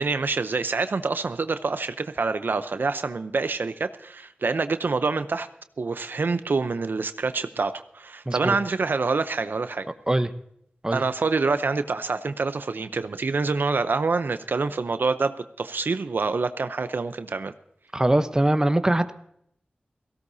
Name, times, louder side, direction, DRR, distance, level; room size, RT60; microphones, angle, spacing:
voice 1, 0.0-5.5 5.8-9.9 10.9-17.5, right 4 dB, 75° right, 11 dB, 0.7 m, -26 dB
voice 2, 8.3-8.6 10.1-10.3 10.8-11.0 17.9-19.1, right 1 dB, 20° right, 10 dB, 0.9 m, -22 dB
18.0 x 16.5 x 2.7 m, 0.71 s
wide cardioid pair, 65°, 3 cm